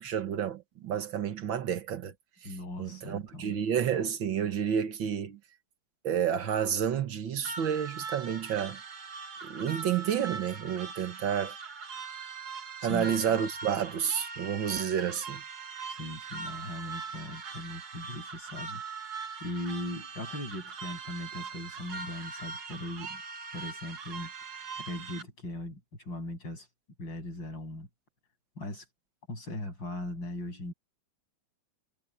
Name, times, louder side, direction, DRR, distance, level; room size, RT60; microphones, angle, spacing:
voice 1, 0.0-2.1 2.4-2.5 2.8-5.4 6.0-8.8 9.4-11.6 12.8-15.4, right 8 dB, 90° right, 2.2 m, -30 dB
voice 2, 2.4-3.6 12.8-13.2 16.0-18.8 19.1-23.2 23.5-26.7 27.0-27.9 28.6-28.9 29.3-30.7, left 1 dB, 75° left, 8.8 m, -39 dB
sound 1, 7.4-25.2, right 5 dB, 55° right, 1.9 m, -41 dB
omnidirectional pair, 2.1 m